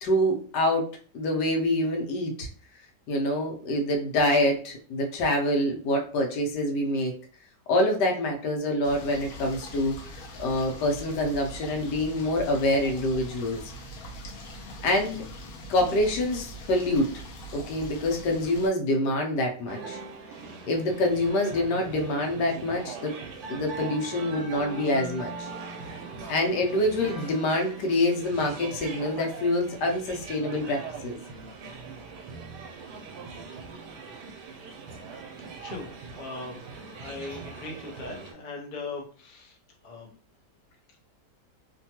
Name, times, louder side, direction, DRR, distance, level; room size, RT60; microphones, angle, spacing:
voice 1, 0.0-0.8 1.1-2.5 3.1-7.1 7.7-10.0 10.4-13.6 14.8-15.2 15.7-17.1 17.5-20.0 20.6-23.1 23.5-25.5 26.3-31.2, left 1 dB, 85° left, 2 dB, 1.3 m, -26 dB
sound 1, 8.8-18.7, equal, 65° left, 1.0 m, -42 dB
sound 2, 19.7-38.3, right 4 dB, 80° right, 1.2 m, -41 dB
voice 2, 35.6-36.6 36.9-39.5 39.8-40.1, left 3 dB, 50° left, 0 dB, 0.6 m, -39 dB
3.2 x 2.2 x 2.8 m, 0.43 s
omnidirectional pair, 1.8 m